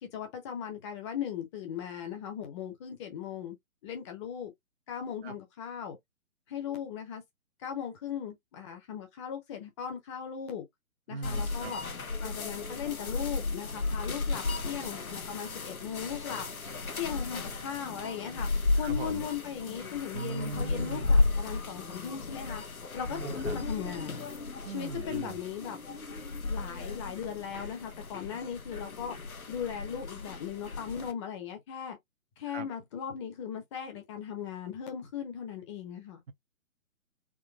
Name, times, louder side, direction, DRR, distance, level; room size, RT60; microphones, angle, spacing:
voice 1, 0.0-3.6 3.8-4.5 4.9-6.0 6.5-7.2 7.6-10.6 11.1-11.8 12.2-16.4 16.9-18.5 18.8-22.6 22.9-23.2 23.5-24.2 24.6-25.8 26.4-29.2 29.5-32.0 32.4-36.2, left 8 dB, 20° left, 0.9 m, -38 dB
voice 2, 11.1-11.7 18.8-19.2 20.1-21.1 23.1-23.6 24.6-25.4 32.5-32.7, right 6 dB, 50° right, 0.8 m, -39 dB
sound 1, 11.2-31.1, left 3 dB, 90° left, 1.0 m, -34 dB
3.8 x 2.9 x 3.0 m
figure-of-eight pair, 135°, 41 cm